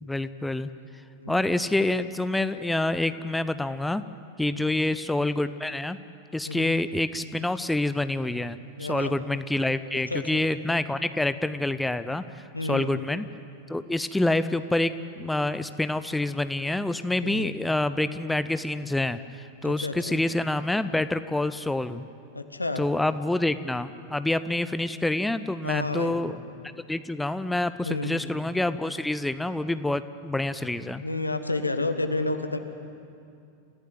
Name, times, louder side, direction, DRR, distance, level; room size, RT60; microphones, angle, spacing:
voice 1, 0.0-0.7 1.3-4.0 4.4-6.0 6.3-12.2 12.7-13.3 13.7-22.0 22.8-26.3 26.9-31.0, left 2 dB, 5° left, 12 dB, 0.7 m, -27 dB
voice 2, 6.4-6.8 8.8-9.1 9.9-10.4 12.5-12.9 17.2-17.5 19.6-20.2 22.3-22.8 25.6-26.2 27.8-28.2 31.0-32.6, left 2 dB, 85° left, 8 dB, 1.4 m, -30 dB
28.5 x 15.5 x 9.4 m, 2.5 s
figure-of-eight pair, 90°, 0 cm